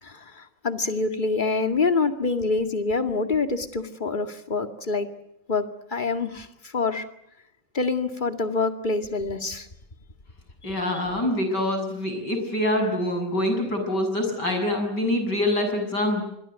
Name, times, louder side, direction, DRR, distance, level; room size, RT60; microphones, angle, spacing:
voice 1, 0.0-5.1 5.5-7.1 7.7-9.7 10.7-10.8, left 3 dB, 25° left, 7 dB, 2.2 m, -26 dB
voice 2, 10.6-16.2, left 1 dB, 75° left, 5 dB, 7.7 m, -25 dB
26.0 x 22.5 x 8.2 m, 0.79 s
omnidirectional pair, 1.9 m